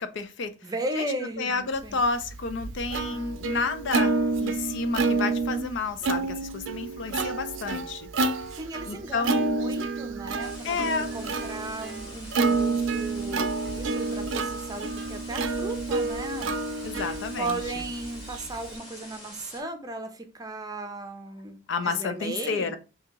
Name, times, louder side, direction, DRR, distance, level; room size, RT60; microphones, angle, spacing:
voice 1, 0.0-0.5 1.0-1.1 1.4-8.1 8.9-9.4 10.6-11.1 16.8-17.6 21.7-22.8, left 4 dB, 65° left, 0.5 m, -30 dB
voice 2, 0.6-2.0 3.1-3.3 8.5-13.5 13.8-22.8, right 2 dB, 20° right, 0.6 m, -36 dB
Plucked string instrument, 2.0-18.8, right 3 dB, 75° right, 0.4 m, -29 dB
sound 1, 10.4-19.6, left 1 dB, 25° left, 1.7 m, -46 dB
2.9 x 2.8 x 3.5 m
head